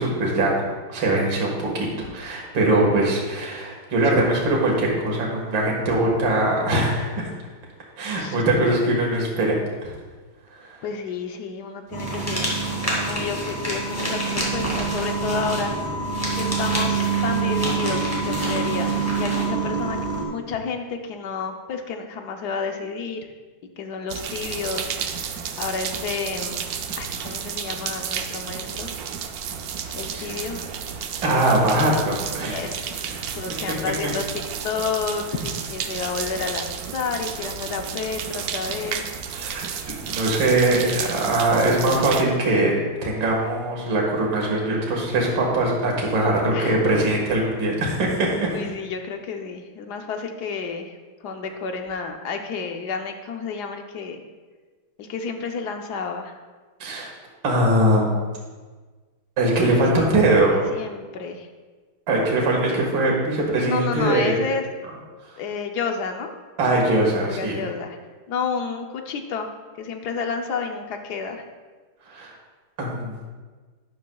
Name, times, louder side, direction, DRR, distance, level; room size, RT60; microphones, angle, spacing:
voice 1, 0.0-7.3 8.0-9.9 10.7-10.8 30.1-30.4 31.2-32.6 33.0-33.4 39.3-39.6 40.0-48.5 56.8-57.1 57.4-58.3 59.4-60.6 62.1-64.4 66.6-67.6 72.1-72.3 72.8-73.2, right 1 dB, 65° right, -2 dB, 2.4 m, -21 dB
voice 2, 10.8-12.4 13.0-15.8 16.3-20.0 20.3-23.3 23.8-26.7 27.0-28.9 29.9-30.7 32.4-33.0 33.4-34.2 34.6-39.2 46.5-46.8 48.5-51.0 51.2-54.2 55.0-56.4 59.6-61.5 63.6-64.7 65.4-66.3 67.3-68.0 68.3-71.4, left 5 dB, 65° left, 5 dB, 1.1 m, -30 dB
sound 1, 11.9-20.2, right 5 dB, 25° right, 1.4 m, -26 dB
sound 2, 12.0-19.5, equal, 5° left, 2.1 m, -31 dB
sound 3, 24.1-42.2, right 7 dB, 85° right, 0.8 m, -32 dB
12.0 x 10.5 x 2.3 m, 1.4 s
omnidirectional pair, 2.4 m